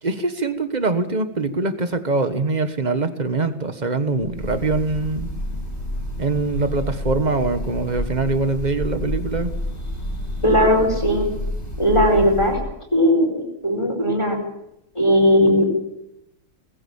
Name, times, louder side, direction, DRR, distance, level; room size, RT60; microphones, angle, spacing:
voice 1, 0.0-5.3 6.2-9.5, right 3 dB, 25° right, 10 dB, 1.4 m, -23 dB
Breathing / Bird, 4.2-12.7, equal, 35° left, 5.7 m, -29 dB
voice 2, 10.4-11.3 11.8-12.6 12.9-14.4 14.9-15.7, equal, 15° left, -1 dB, 4.7 m, -18 dB
20.5 x 15.0 x 8.7 m, 0.80 s
omnidirectional pair, 2.1 m